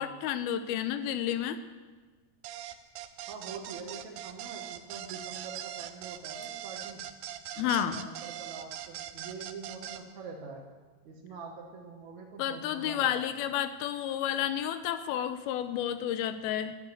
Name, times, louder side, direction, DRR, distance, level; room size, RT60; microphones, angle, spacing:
voice 1, 0.0-1.6 7.6-8.0 12.4-16.8, left 10 dB, 80° left, 11 dB, 2.4 m, -31 dB
sound 1, 2.4-10.0, right 11 dB, 75° right, 2.1 m, -41 dB
voice 2, 3.3-7.1 7.5-10.6 11.0-13.2, right 4 dB, 60° right, -1 dB, 2.2 m, -45 dB
12.0 x 10.5 x 9.3 m, 1.4 s
omnidirectional pair, 4.8 m